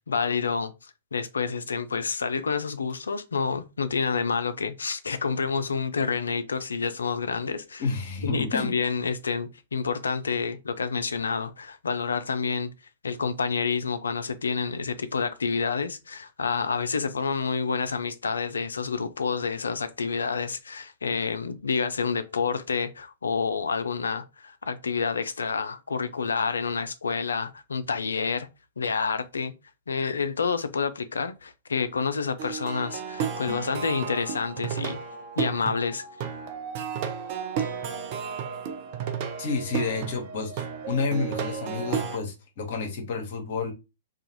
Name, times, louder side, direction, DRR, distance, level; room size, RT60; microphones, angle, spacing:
voice 1, 0.1-7.8 8.2-12.7 13.0-28.5 28.8-29.5 29.9-35.0 35.4-36.0, left 5 dB, 75° left, 0.4 m, -28 dB
voice 2, 7.8-8.7 39.4-43.7, left 4 dB, 50° left, 0.9 m, -30 dB
Plucked string instrument, 32.4-42.2, right 7 dB, 45° right, 0.5 m, -33 dB
2.5 x 2.3 x 2.9 m
figure-of-eight pair, 110°, 0 cm